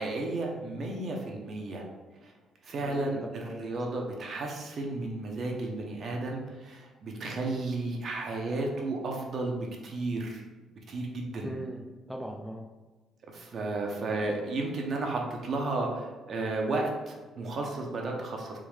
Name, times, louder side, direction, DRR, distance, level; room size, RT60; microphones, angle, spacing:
voice 1, 0.0-1.8 2.2-2.3 2.6-9.6 9.8-10.4 10.9-11.5 13.3-18.6, right 2 dB, 55° right, 0 dB, 0.7 m, -33 dB
voice 2, 2.8-3.7 11.4-12.7, right 1 dB, ahead, 1 dB, 0.3 m, -40 dB
3.6 x 2.1 x 3.1 m, 1.2 s
cardioid pair, 90°, 0 cm